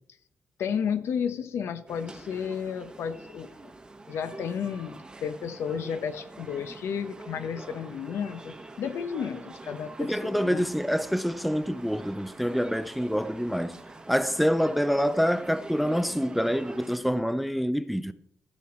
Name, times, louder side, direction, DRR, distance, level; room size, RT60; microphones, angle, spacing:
voice 1, 0.6-3.7 4.1-10.7, left 7 dB, 80° left, 0.8 m, -32 dB
sound 1, 1.9-17.0, right 2 dB, 20° right, 1.0 m, -45 dB
voice 2, 10.0-13.8 14.1-18.1, equal, ahead, 0.4 m, -26 dB
15.5 x 6.1 x 4.3 m
cardioid pair, 130°, 4 cm